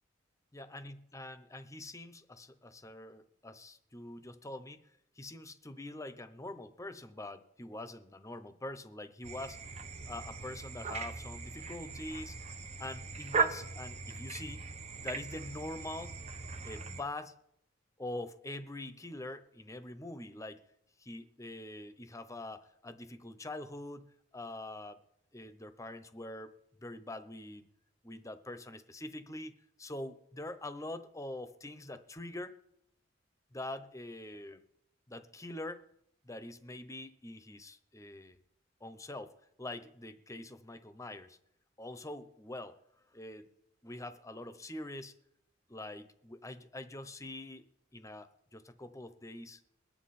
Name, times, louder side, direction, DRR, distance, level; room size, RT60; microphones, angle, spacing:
voice 1, 0.5-4.8 5.2-9.6 10.1-12.4 12.8-14.7 15.0-16.2 16.6-17.4 18.0-20.6 21.0-25.0 25.3-26.5 26.8-27.7 28.0-32.6 33.5-34.6 35.1-35.8 36.2-38.4 38.8-39.3 39.6-41.4 41.8-42.8 43.1-43.5 43.8-45.1 45.7-47.6 47.9-49.6, left 1 dB, 15° left, 11 dB, 0.9 m, -44 dB
sound 1, 9.2-17.0, right 4 dB, 35° right, 1.0 m, -38 dB
22.0 x 9.7 x 4.3 m, 0.76 s
head